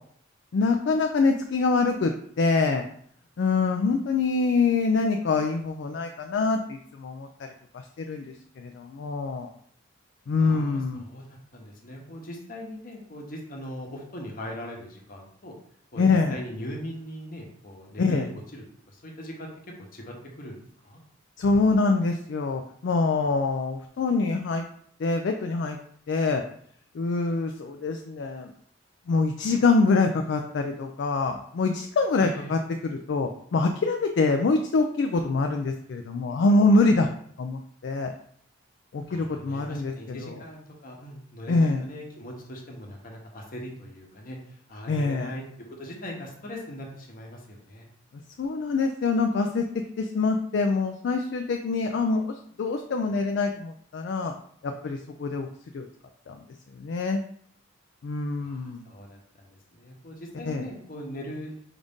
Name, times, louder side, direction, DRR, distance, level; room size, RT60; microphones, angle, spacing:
voice 1, 0.5-2.8 3.4-9.5 10.3-11.1 16.0-16.4 18.0-18.3 21.4-24.6 25.0-25.8 26.1-26.4 26.9-28.5 29.1-37.1 37.4-38.1 38.9-40.4 41.5-41.8 44.9-45.3 48.4-54.3 54.6-55.5 55.7-55.9 56.3-56.4 56.7-57.2 58.0-58.9 60.5-60.7, left 3 dB, 60° left, 4 dB, 0.3 m, -25 dB
voice 2, 10.4-15.5 15.9-16.0 16.3-19.5 19.8-21.0 32.2-32.5 39.1-45.4 45.7-47.9 58.4-61.6, equal, 45° left, 0 dB, 1.0 m, -40 dB
4.9 x 2.6 x 3.5 m, 0.62 s
head